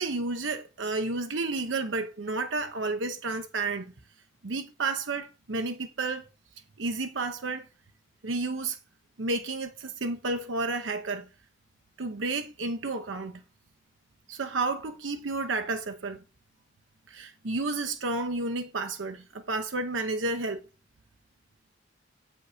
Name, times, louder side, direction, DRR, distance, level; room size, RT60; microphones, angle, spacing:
voice 1, 0.0-3.9 4.4-6.3 6.8-7.7 8.2-8.8 9.2-11.3 12.0-13.4 14.3-16.2 17.1-20.7, right 3 dB, 75° right, 0.8 m, -31 dB
8.0 x 5.4 x 4.9 m
head